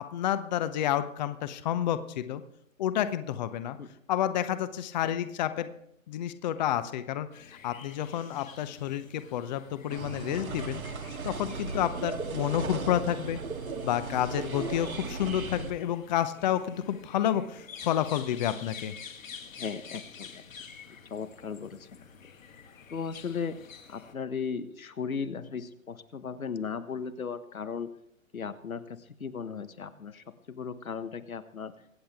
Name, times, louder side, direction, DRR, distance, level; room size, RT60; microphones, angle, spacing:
voice 1, 0.0-2.4 2.8-3.8 4.1-5.7 6.1-7.3 7.6-10.8 11.2-13.4 13.8-18.9, left 11 dB, 30° left, 12 dB, 0.8 m, -30 dB
sound 1, 7.3-24.1, left 6 dB, 70° left, 1.8 m, -49 dB
sound 2, 9.9-15.7, right 4 dB, 85° right, 1.7 m, -36 dB
voice 2, 19.6-20.4 20.9-22.0 22.9-23.6 23.9-27.9 28.3-31.7, left 6 dB, 85° left, 12 dB, 1.4 m, -36 dB
24.0 x 8.7 x 3.5 m, 0.74 s
hypercardioid pair, 140°, 41 cm